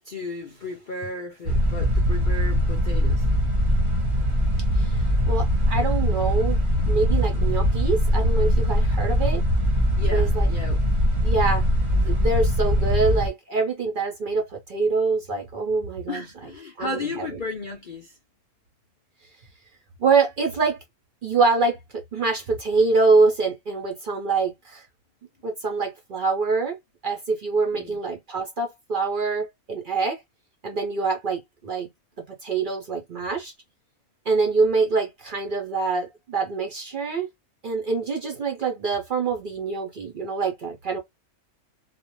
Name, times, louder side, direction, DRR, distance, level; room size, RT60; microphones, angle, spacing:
voice 1, 0.1-3.2 10.0-10.8 16.1-18.2 27.7-28.0, left 3 dB, 75° left, 0.4 m, -34 dB
sound 1, 1.4-13.3, equal, 30° right, 0.7 m, -21 dB
voice 2, 4.7-6.6 6.8-9.4 10.1-10.5 11.2-16.2 16.8-17.2 20.0-20.8 21.2-21.8 22.1-24.8 25.4-26.8 27.0-30.2 30.6-31.9 32.4-33.5 34.3-37.3 37.6-41.0, right 4 dB, 60° right, 0.5 m, -25 dB
2.4 x 2.1 x 2.9 m
omnidirectional pair, 1.6 m